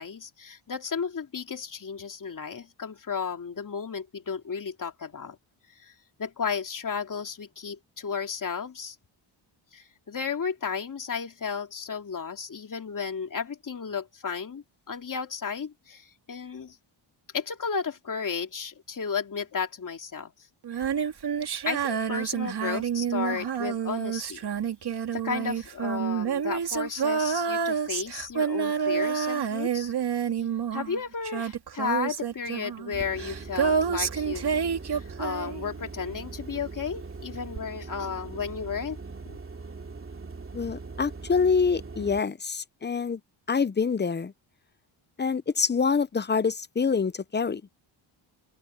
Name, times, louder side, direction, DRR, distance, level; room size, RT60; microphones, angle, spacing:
voice 1, 0.0-5.4 5.8-5.9 6.2-9.0 9.7-16.8 17.3-20.3 20.7-20.8 21.6-24.5 25.1-29.9 30.7-34.5 34.9-39.0 39.3-39.4, left 6 dB, 40° left, 2.8 m, -33 dB
Female singing, 20.6-36.0 37.6-37.7, right 7 dB, 50° right, 2.4 m, -29 dB
sound 1, 32.9-42.2, right 4 dB, 25° right, 2.8 m, -41 dB
voice 2, 40.5-43.2 43.5-44.3 45.2-47.6, left 5 dB, 20° left, 0.6 m, -26 dB
open air
cardioid pair, 100°, 49 cm